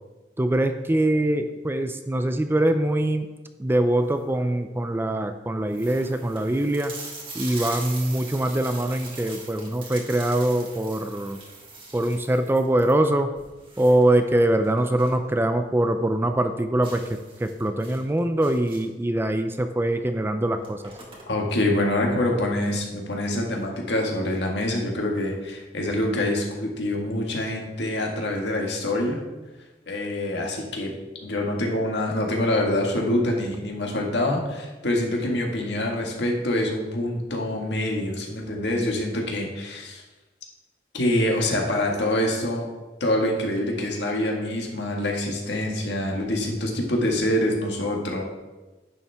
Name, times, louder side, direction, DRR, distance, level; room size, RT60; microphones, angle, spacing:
voice 1, 0.4-3.3 3.6-6.9 7.3-11.4 11.9-13.3 13.8-20.9, right 1 dB, 15° right, 7 dB, 0.4 m, -23 dB
sound 1, 4.0-4.3 5.0-5.1 5.3-5.4 5.7-15.3 15.6-15.7 16.1-16.2 16.8-19.1 20.0-20.1 20.4-21.6, right 3 dB, 30° right, 1.7 m, -41 dB
voice 2, 21.3-29.2 29.9-30.9 31.2-40.0 40.9-42.7 43.0-48.2, left 1 dB, 70° left, 0 dB, 1.8 m, -25 dB
10.5 x 7.1 x 3.5 m, 1.2 s
head